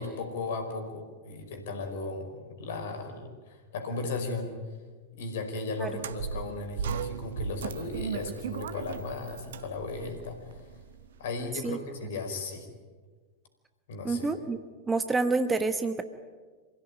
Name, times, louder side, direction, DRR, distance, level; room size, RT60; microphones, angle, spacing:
voice 1, 0.0-4.5 5.2-10.7 11.2-12.7 13.9-14.3, left 3 dB, 55° left, 5 dB, 5.0 m, -36 dB
sound 1, 5.9-11.2, right 7 dB, 60° right, 1.0 m, -37 dB
voice 2, 14.0-14.6 14.9-16.0, right 3 dB, 15° right, 9 dB, 1.3 m, -27 dB
27.5 x 16.5 x 9.3 m, 1.4 s
figure-of-eight pair, 90°, 0 cm